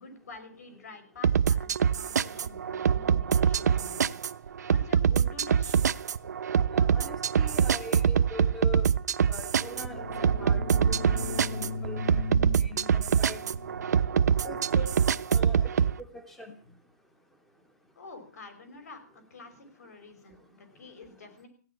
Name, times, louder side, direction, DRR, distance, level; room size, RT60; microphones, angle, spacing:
voice 1, 0.0-4.2 4.7-5.8 18.0-21.5, left 3 dB, 70° left, 7 dB, 5.7 m, -48 dB
sound 1, 1.2-15.9, right 7 dB, 85° right, 0.7 m, -25 dB
voice 2, 6.7-8.9 9.3-10.7 11.5-12.2 12.6-13.4 14.4-14.9 15.3-15.7 16.0-16.6, left 1 dB, ahead, 7 dB, 0.7 m, -42 dB
sound 2, 9.6-15.1, left 4 dB, 50° left, 0.6 m, -38 dB
15.5 x 10.5 x 7.5 m, 0.41 s
hypercardioid pair, 180°, 9 cm